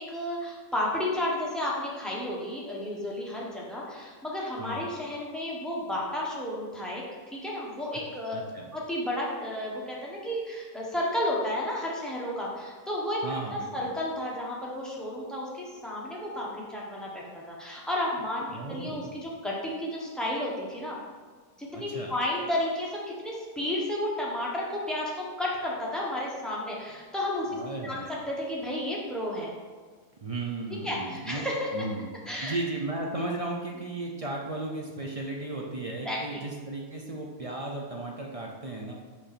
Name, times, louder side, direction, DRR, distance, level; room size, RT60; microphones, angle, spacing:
voice 1, 0.0-7.0 7.3-8.4 8.7-13.2 13.5-21.0 21.6-29.5 30.8-31.7 32.3-32.6 36.0-36.4, left 1 dB, ahead, -4 dB, 1.1 m, -32 dB
voice 2, 8.3-8.7 13.2-13.9 18.5-19.2 21.7-22.1 27.5-28.1 30.2-31.4 31.7-32.1 32.4-38.9, right 2 dB, 40° right, -1 dB, 0.5 m, -35 dB
5.5 x 4.7 x 4.3 m, 1.5 s
omnidirectional pair, 1.5 m